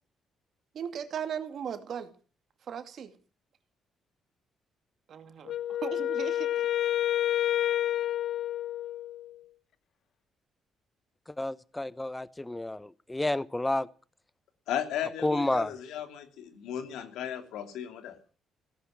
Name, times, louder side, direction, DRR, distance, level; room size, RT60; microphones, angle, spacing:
voice 1, 0.7-2.1 2.7-3.1 5.1-5.5 5.8-6.5, right 8 dB, 60° right, 2.4 m, -37 dB
Wind instrument woodwind instrument, 5.5-9.4, left 12 dB, 70° left, 0.7 m, -29 dB
voice 2, 11.3-13.9 15.2-15.7, left 2 dB, 10° left, 0.7 m, -30 dB
voice 3, 14.7-18.1, left 10 dB, 90° left, 2.9 m, -35 dB
17.0 x 11.5 x 7.6 m
cardioid pair, 90°, 0 cm